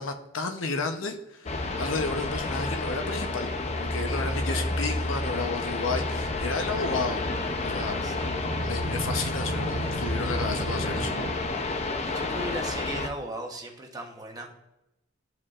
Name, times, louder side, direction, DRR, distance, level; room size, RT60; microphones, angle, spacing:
voice 1, 0.0-3.5 3.8-7.2 7.6-8.0 8.6-11.1, left 3 dB, 80° left, 5 dB, 0.8 m, -32 dB
sound 1, 1.5-13.1, left 2 dB, 35° left, 0.6 m, -30 dB
sound 2, 6.4-11.3, right 2 dB, 90° right, 0.6 m, -35 dB
voice 2, 7.9-8.4 12.0-14.5, right 1 dB, 20° right, 1 dB, 1.0 m, -37 dB
12.5 x 4.4 x 2.5 m, 0.90 s
head